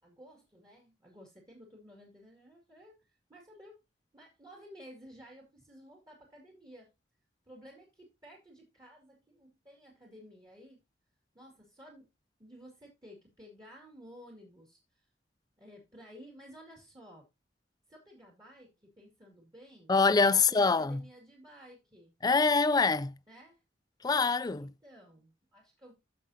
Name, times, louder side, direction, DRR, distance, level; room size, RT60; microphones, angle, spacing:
voice 1, 0.0-3.8 4.1-6.9 7.4-10.8 11.3-12.1 12.4-15.1 15.6-17.3 17.9-22.2 23.3-23.6 24.6-25.9, equal, 25° right, 2.3 m, -54 dB
voice 2, 19.9-21.0 22.2-23.1 24.0-24.7, left 4 dB, 20° left, 0.4 m, -25 dB
14.5 x 5.2 x 2.7 m
head